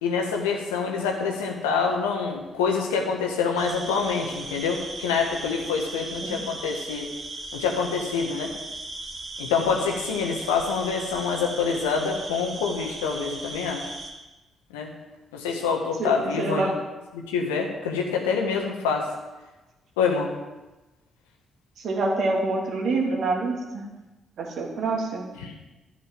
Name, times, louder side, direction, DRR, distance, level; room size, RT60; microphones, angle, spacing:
voice 1, 0.0-7.1 7.5-8.5 9.4-13.8 14.7-14.9 15.3-16.7 17.1-19.1 20.0-20.3 25.4-25.5, left 5 dB, 85° left, 2 dB, 1.5 m, -26 dB
sound 1, 3.6-14.1, right 2 dB, 45° right, 3.0 m, -37 dB
voice 2, 16.4-16.7 21.8-23.8 24.4-25.3, right 3 dB, 65° right, 0 dB, 2.6 m, -26 dB
11.0 x 7.3 x 7.5 m, 1.1 s
hypercardioid pair, 40°, 0 cm